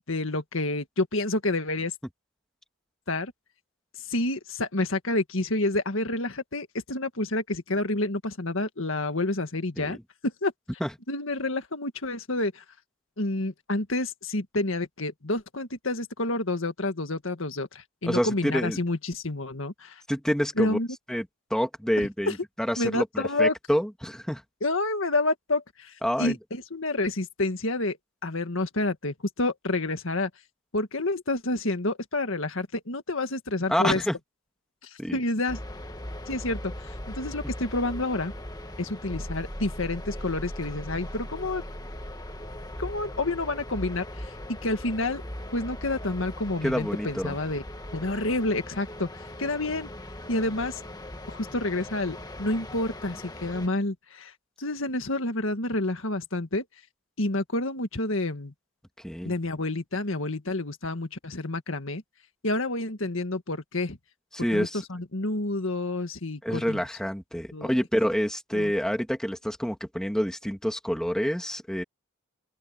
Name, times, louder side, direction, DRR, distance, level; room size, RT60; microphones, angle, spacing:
voice 1, 0.1-1.9 3.1-3.3 4.1-10.5 11.1-12.6 13.2-20.0 20.6-20.9 22.0-22.3 22.8-23.5 24.6-28.0 28.2-30.3 30.7-34.0 34.8-35.6 36.3-36.7 37.1-38.3 38.8-41.6 42.8-44.3 44.6-45.2 45.5-47.6 47.9-49.1 49.4-49.9 50.3-50.8 51.3-54.3 54.6-56.6 57.2-58.5 59.3-62.0 62.4-64.0 64.5-66.8 67.5-67.7 68.5-68.7, left 2 dB, 65° left, 1.8 m, -29 dB
voice 2, 18.0-18.8 20.1-20.8 21.1-21.3 21.5-24.4 26.0-26.4 33.7-34.2 35.0-35.2 46.6-47.3 59.0-59.3 64.3-64.8 66.4-71.8, equal, 5° left, 2.2 m, -27 dB
sound 1, 35.5-53.7, left 1 dB, 20° left, 2.1 m, -40 dB
sound 2, 39.1-44.1, equal, 20° right, 6.5 m, -41 dB
open air
head